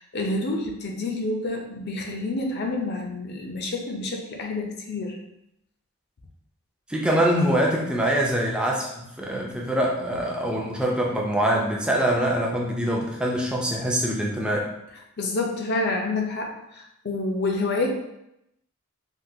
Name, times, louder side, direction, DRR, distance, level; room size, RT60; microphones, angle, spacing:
voice 1, 0.0-5.2 15.2-17.9, left 2 dB, 50° left, 1 dB, 0.5 m, -28 dB
voice 2, 6.9-14.7, right 1 dB, 5° right, -2 dB, 0.4 m, -24 dB
3.5 x 2.3 x 2.7 m, 0.83 s
head